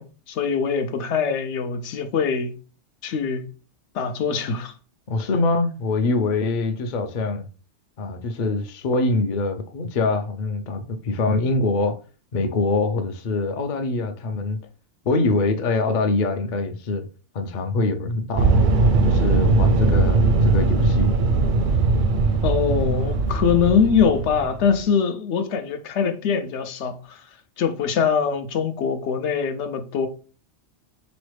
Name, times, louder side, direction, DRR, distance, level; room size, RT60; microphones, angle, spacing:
voice 1, 0.0-2.5 3.0-3.5 3.9-4.7 22.4-27.2 27.6-30.1, left 6 dB, 75° left, 0.9 m, -23 dB
voice 2, 5.1-7.5 8.0-12.0 12.3-14.6 15.1-17.1 17.3-18.5 19.0-21.2, left 3 dB, 55° left, 0.6 m, -24 dB
sound 1, 18.4-24.8, right 3 dB, 60° right, 0.5 m, -19 dB
4.0 x 3.1 x 3.2 m
omnidirectional pair, 1.2 m